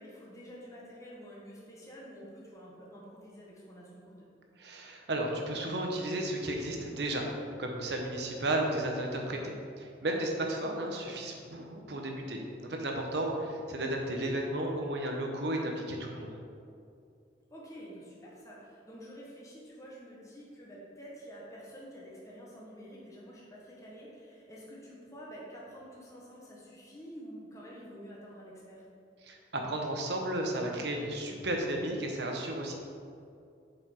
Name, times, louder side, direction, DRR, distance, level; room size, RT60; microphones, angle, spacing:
voice 1, 0.0-4.3 10.6-10.8 13.6-13.7 17.5-28.8, equal, 15° left, -5 dB, 1.3 m, -49 dB
voice 2, 4.6-16.4 29.2-32.7, right 1 dB, 60° right, 1 dB, 1.0 m, -33 dB
7.6 x 5.2 x 4.6 m, 2.5 s
head